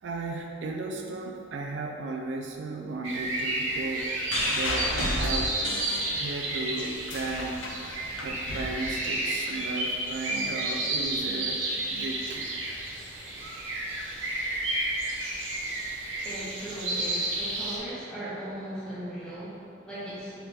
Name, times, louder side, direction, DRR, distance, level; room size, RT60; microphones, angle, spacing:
voice 1, 0.0-4.1 4.5-5.5 6.1-7.6 8.2-12.6, right 3 dB, 65° right, 2 dB, 0.3 m, -35 dB
sound 1, 3.0-17.8, right 2 dB, 85° right, 0.8 m, -31 dB
sound 2, 4.3-6.5 6.9-9.5 10.4-10.5, left 1 dB, 80° left, 0.6 m, -33 dB
voice 2, 16.2-20.4, right 1 dB, 5° left, -10 dB, 1.1 m, -38 dB
3.7 x 3.3 x 4.2 m, 2.3 s
head